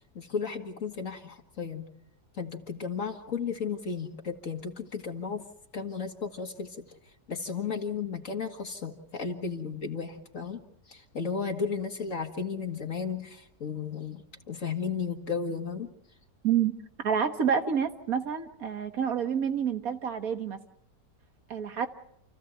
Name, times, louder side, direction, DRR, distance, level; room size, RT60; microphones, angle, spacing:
voice 1, 0.2-1.9 2.3-5.5 5.7-6.9 7.3-15.9, left 5 dB, 50° left, 4 dB, 1.9 m, -34 dB
voice 2, 17.0-20.6 21.5-21.9, right 7 dB, 60° right, 8 dB, 1.8 m, -28 dB
28.5 x 15.0 x 8.0 m, 0.77 s
omnidirectional pair, 1.8 m